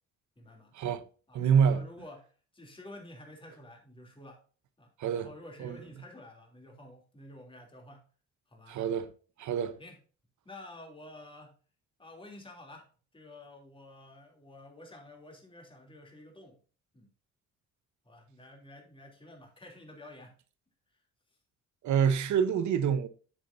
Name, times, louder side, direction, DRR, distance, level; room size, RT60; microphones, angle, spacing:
voice 1, 0.4-0.8 1.3-1.4 1.7-2.3 2.5-4.4 4.8-8.0 8.5-8.8 9.8-10.0 10.4-11.5 12.0-12.9 13.1-16.6 16.9-17.1 18.0-20.3, left 1 dB, 15° left, 3.2 m, -50 dB
voice 2, 1.3-1.9 5.0-5.3 5.6-5.8 8.7-9.1 9.4-9.7 21.8-23.1, right 7 dB, 70° right, 1.1 m, -26 dB
9.9 x 7.4 x 2.7 m
cardioid pair, 90°, 30 cm